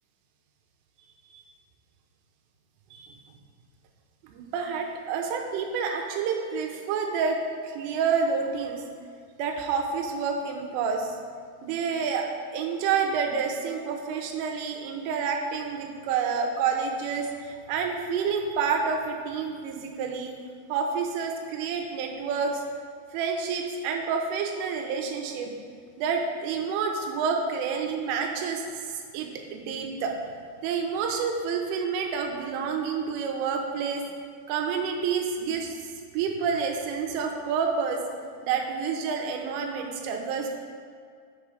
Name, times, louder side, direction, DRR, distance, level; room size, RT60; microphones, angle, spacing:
voice 1, 4.2-7.4 7.6-8.8 9.4-11.2 11.6-20.3 20.7-22.6 23.1-25.5 26.0-30.2 30.6-34.0 34.5-35.8 36.1-38.0 38.4-40.5, right 5 dB, 80° right, 2 dB, 3.3 m, -29 dB
7.9 x 6.4 x 4.9 m, 2.2 s
omnidirectional pair, 5.8 m